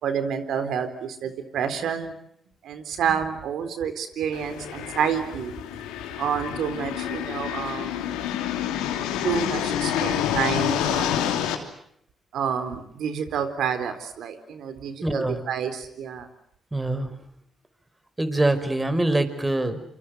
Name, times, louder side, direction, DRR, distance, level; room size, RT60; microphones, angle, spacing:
voice 1, 0.0-2.1 2.6-5.5 6.2-8.1 9.2-11.3 12.3-16.3, right 7 dB, 75° right, 10 dB, 4.0 m, -29 dB
sound 1, 4.3-11.5, left 10 dB, 90° left, 3.1 m, -28 dB
voice 2, 15.0-15.4 16.7-17.1 18.2-19.8, right 2 dB, 15° right, 11 dB, 5.2 m, -24 dB
28.0 x 26.0 x 8.1 m, 0.70 s
supercardioid pair, 50°, 0 cm